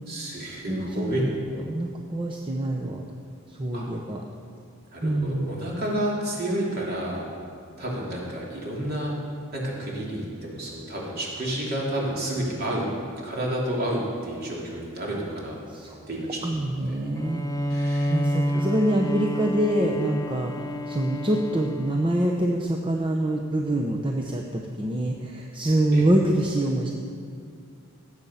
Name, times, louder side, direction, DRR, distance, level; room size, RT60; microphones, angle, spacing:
voice 1, 0.1-1.2 3.7-3.8 4.9-7.2 7.8-9.1 9.5-12.9 13.2-15.6 16.1-17.0 17.7-18.1 18.5-18.7 25.9-26.0, right 1 dB, 45° right, -4 dB, 3.0 m, -30 dB
voice 2, 0.7-1.3 1.6-3.0 3.6-4.2 5.0-5.5 15.7-16.0 16.4-17.5 18.1-26.9, right 1 dB, 25° right, 1 dB, 0.7 m, -25 dB
Bowed string instrument, 17.1-22.6, equal, 15° left, 0.4 m, -29 dB
19.5 x 8.1 x 5.6 m, 2.3 s
head